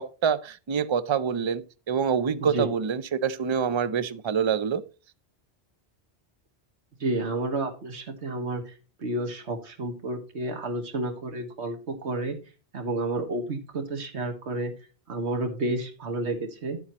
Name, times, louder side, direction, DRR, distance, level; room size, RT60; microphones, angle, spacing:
voice 1, 0.0-4.8, right 7 dB, 40° right, 0.4 m, -26 dB
voice 2, 7.0-8.7 9.0-12.4 12.7-14.7 15.1-16.8, right 2 dB, 85° right, 1.7 m, -30 dB
11.0 x 8.3 x 3.0 m
omnidirectional pair, 1.1 m